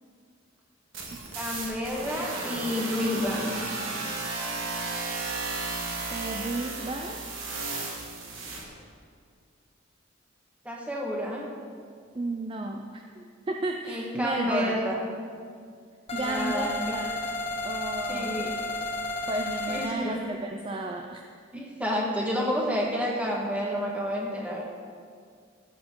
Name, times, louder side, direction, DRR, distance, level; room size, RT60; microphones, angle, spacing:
sound 1, 0.9-8.6, right 3 dB, 75° right, 1.6 m, -34 dB
voice 1, 1.3-3.5 10.6-11.5 13.9-15.1 16.1-16.9 18.1-18.6 19.7-20.2 21.5-24.6, left 1 dB, 5° right, -3 dB, 1.5 m, -30 dB
voice 2, 6.1-7.2 12.1-14.8 16.1-17.2 17.6-18.3 19.3-21.2 21.5-21.6, right 2 dB, 25° right, 3 dB, 0.4 m, -33 dB
sound 2, 16.1-19.9, left 2 dB, 30° left, 1.0 m, -32 dB
14.0 x 7.3 x 3.8 m, 2.1 s
head